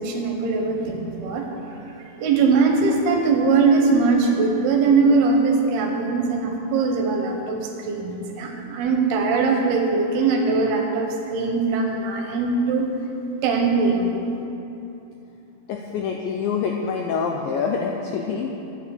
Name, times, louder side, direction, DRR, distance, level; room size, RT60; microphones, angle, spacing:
voice 1, 0.0-1.5 2.0-12.9 13.4-14.2, right 4 dB, 75° right, 2 dB, 2.9 m, -21 dB
voice 2, 15.7-18.6, left 5 dB, 85° left, 1 dB, 2.0 m, -26 dB
10.0 x 9.2 x 7.1 m, 2.9 s
omnidirectional pair, 4.8 m